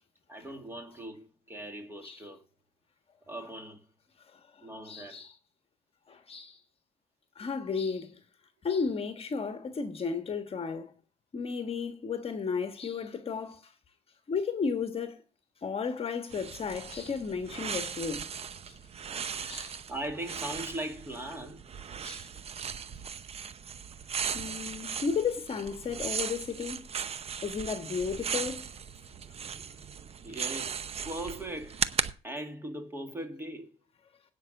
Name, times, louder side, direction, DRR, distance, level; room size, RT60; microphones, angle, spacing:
voice 1, 0.3-2.4 3.3-3.8 4.6-5.2 19.3-21.6 30.2-31.8 32.2-33.7, right 1 dB, 15° right, 2.3 m, -40 dB
voice 2, 4.3-5.3 6.1-6.6 7.4-8.2 8.6-10.9 11.3-13.7 14.3-15.2 15.6-18.3 18.7-18.8 19.3-19.8 22.0-22.3 24.3-26.8 27.4-28.7, left 5 dB, 35° left, 1.4 m, -34 dB
sound 1, 16.3-32.1, right 7 dB, 35° right, 0.8 m, -37 dB
9.5 x 5.7 x 7.9 m
cardioid pair, 110°, 17 cm